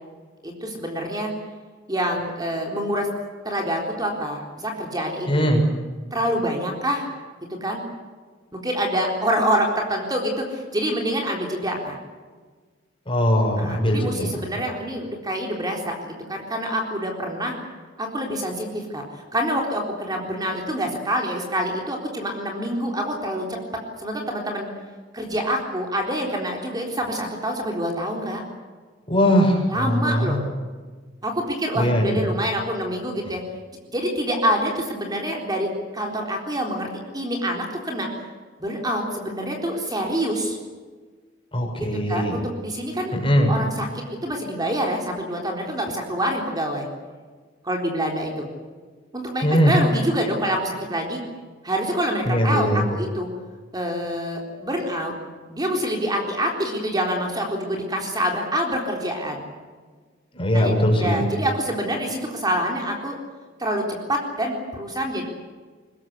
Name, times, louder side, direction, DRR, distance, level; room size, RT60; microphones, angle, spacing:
voice 1, 0.4-1.3 1.9-3.1 3.4-5.5 6.1-7.1 7.6-7.8 8.5-12.0 13.6-17.5 18.0-23.6 24.0-24.7 25.1-28.4 29.7-30.4 31.2-33.4 33.8-35.7 35.9-36.9 37.1-38.1 38.6-40.6 41.8-43.1 43.5-46.9 47.6-48.5 49.1-51.2 51.6-53.3 53.7-55.1 55.5-59.4 60.5-60.7 61.0-63.2 63.6-65.2, equal, 20° right, 1 dB, 3.9 m, -26 dB
voice 2, 5.3-5.7 13.1-14.3 29.1-30.4 31.7-32.2 41.5-42.4 43.1-43.5 49.4-49.8 52.3-52.8 60.3-61.3, equal, 30° left, 1 dB, 6.3 m, -20 dB
23.5 x 20.5 x 8.2 m, 1.5 s
head